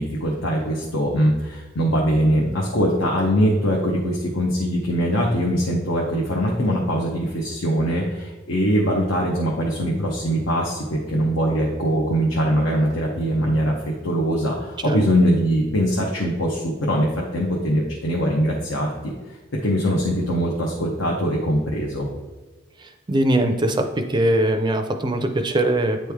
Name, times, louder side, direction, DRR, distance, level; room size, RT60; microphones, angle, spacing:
voice 1, 0.0-19.4 19.6-22.1, equal, 80° left, -1 dB, 0.8 m, -22 dB
voice 2, 22.8-26.0, right 1 dB, 25° right, 7 dB, 0.4 m, -21 dB
9.1 x 3.2 x 3.5 m, 1.3 s
head